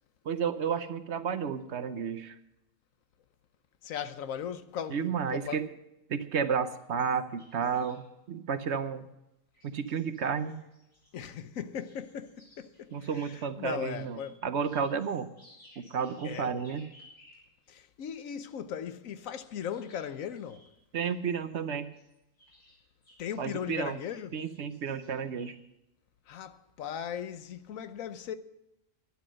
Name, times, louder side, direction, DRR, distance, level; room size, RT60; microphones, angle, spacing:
voice 1, 0.2-2.4 4.9-5.6 6.1-9.1 9.6-10.6 12.9-15.3 15.8-16.8 20.9-21.9 23.4-24.0 24.3-25.6, right 6 dB, 60° right, 1.0 m, -32 dB
voice 2, 3.8-5.6 11.1-13.1 13.6-14.4 16.2-16.6 17.7-20.7 23.2-24.4 26.3-28.4, left 8 dB, 90° left, 1.2 m, -38 dB
sound 1, 6.7-8.1 9.5-11.2 11.8-17.5 19.2-23.4 23.7-25.6, left 1 dB, 60° left, 5.2 m, -60 dB
11.5 x 11.5 x 6.4 m
omnidirectional pair, 1.4 m